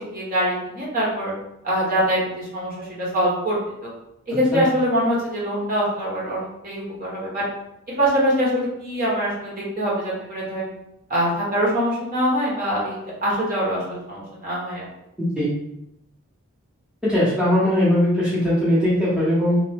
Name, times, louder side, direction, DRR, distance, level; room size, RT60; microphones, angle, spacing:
voice 1, 0.0-1.3 1.6-3.6 3.8-3.9 4.3-7.4 7.9-10.7 11.1-14.9, equal, 40° right, -6 dB, 1.0 m, -24 dB
voice 2, 15.2-15.5 17.0-19.6, left 1 dB, 5° right, -10 dB, 0.7 m, -20 dB
2.9 x 2.0 x 3.3 m, 0.82 s
head